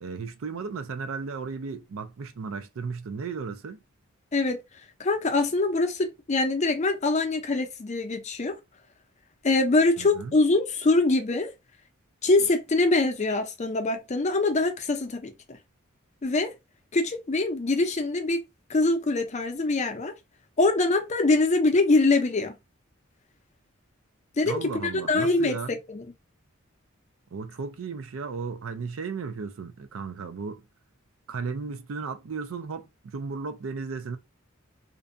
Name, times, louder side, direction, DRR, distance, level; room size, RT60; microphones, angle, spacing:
voice 1, 0.0-3.8 10.0-10.4 24.4-25.8 27.3-30.6 31.3-34.2, right 4 dB, 70° right, 0.4 m, -35 dB
voice 2, 5.0-8.5 9.4-11.5 12.2-15.3 16.2-16.5 16.9-18.4 18.7-20.1 20.6-22.5 24.4-26.0, left 2 dB, 35° left, 0.5 m, -24 dB
2.5 x 2.2 x 2.5 m
head